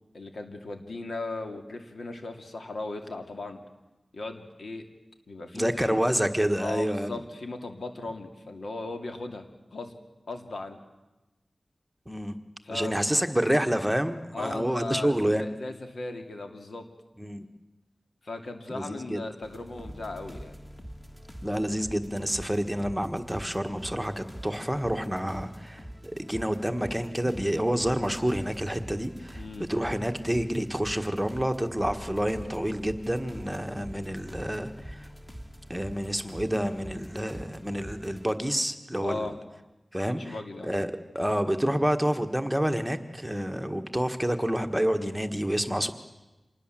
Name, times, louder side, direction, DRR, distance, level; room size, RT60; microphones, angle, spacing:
voice 1, 0.1-3.6 4.1-4.8 5.3-6.0 6.6-9.5 9.7-9.9 10.3-10.8 12.6-13.1 14.3-16.9 18.2-20.6 29.4-29.7 39.0-39.4 40.1-40.8, left 2 dB, 85° left, 5 dB, 2.6 m, -37 dB
voice 2, 5.5-7.2 12.1-12.4 12.7-15.5 17.2-17.4 18.7-19.2 21.4-35.1 35.7-39.3 39.9-40.3 40.6-45.9, equal, 5° right, 7 dB, 1.6 m, -28 dB
sound 1, 19.4-38.3, equal, 15° left, 3.0 m, -44 dB
26.5 x 20.0 x 7.6 m, 1.0 s
wide cardioid pair, 75°, 0 cm